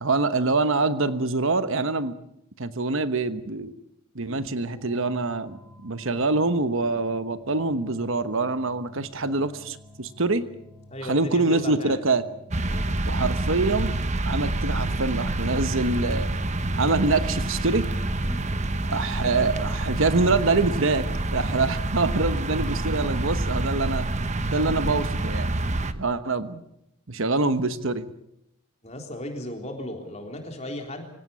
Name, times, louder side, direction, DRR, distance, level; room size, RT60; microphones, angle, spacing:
voice 1, 0.0-2.2 2.6-3.7 4.1-5.6 5.8-10.4 11.1-12.2 13.1-13.9 14.2-16.3 16.8-17.9 18.9-21.1 21.3-24.1 24.5-25.5 25.9-26.6 27.1-28.0, right 3 dB, 60° right, 11 dB, 1.1 m, -25 dB
sound 1, 4.3-13.5, left 1 dB, ahead, 2.2 m, -50 dB
voice 2, 10.9-12.0 12.6-13.0 18.2-18.5 22.4-22.9 28.8-31.0, left 1 dB, 30° left, 3 dB, 3.8 m, -37 dB
sound 2, 12.5-25.9, right 2 dB, 30° right, 1.0 m, -27 dB
25.0 x 17.0 x 8.4 m, 0.81 s
head